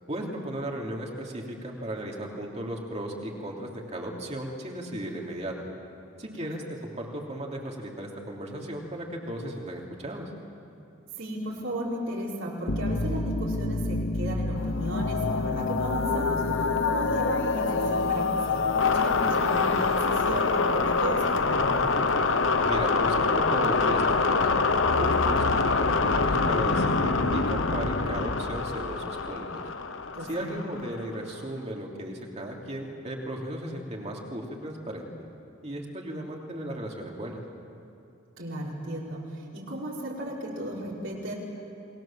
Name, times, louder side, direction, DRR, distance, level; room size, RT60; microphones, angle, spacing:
voice 1, 0.1-5.5 6.2-10.3 22.6-24.5 25.0-29.6 30.3-35.1 35.6-37.4, right 1 dB, 35° right, -1 dB, 3.2 m, -35 dB
voice 2, 11.2-21.9 30.1-30.6 38.4-41.3, right 1 dB, 65° right, -4 dB, 5.2 m, -35 dB
sound 1, 12.7-31.1, left 4 dB, 65° left, 1.1 m, -25 dB
28.5 x 21.0 x 7.6 m, 2.6 s
head